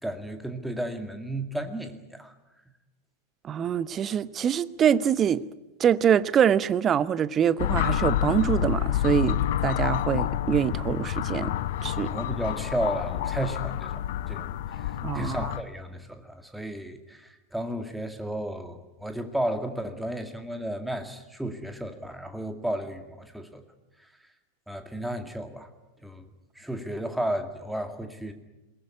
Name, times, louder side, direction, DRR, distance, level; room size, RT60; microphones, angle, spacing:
voice 1, 0.0-2.3 12.1-23.6 24.0-24.1 24.7-25.7 26.0-26.3 26.6-28.3, right 1 dB, 5° right, 7 dB, 2.1 m, -33 dB
voice 2, 3.4-5.4 5.8-11.5 11.8-12.1 15.0-15.4, right 9 dB, 25° right, 18 dB, 0.8 m, -24 dB
sound 1, 7.6-15.6, left 11 dB, 55° left, 1.0 m, -28 dB
21.5 x 19.5 x 9.7 m, 1.0 s
figure-of-eight pair, 90°, 0 cm